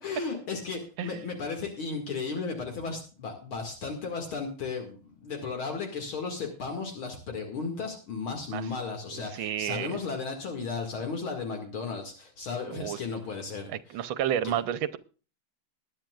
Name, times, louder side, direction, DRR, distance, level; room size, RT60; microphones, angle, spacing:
voice 1, 0.0-14.0 14.4-14.5, left 4 dB, 70° left, 3 dB, 2.9 m, -35 dB
voice 2, 9.1-10.0 12.7-13.0 13.7-15.0, right 10 dB, 70° right, 14 dB, 1.5 m, -31 dB
20.5 x 10.5 x 2.4 m, 0.36 s
omnidirectional pair, 2.4 m